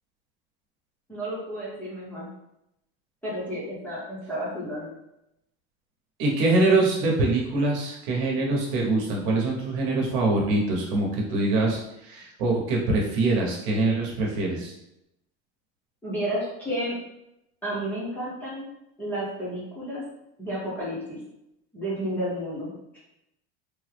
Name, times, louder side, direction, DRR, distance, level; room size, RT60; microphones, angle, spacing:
voice 1, 1.1-2.3 3.2-4.9 16.0-17.0 17.6-18.7 19.0-20.0 20.4-21.2 21.7-23.0, equal, 5° left, -9 dB, 0.6 m, -31 dB
voice 2, 6.2-14.7, right 2 dB, 60° right, -2 dB, 0.9 m, -24 dB
3.4 x 2.0 x 3.2 m, 0.85 s
cardioid pair, 175°, 30 cm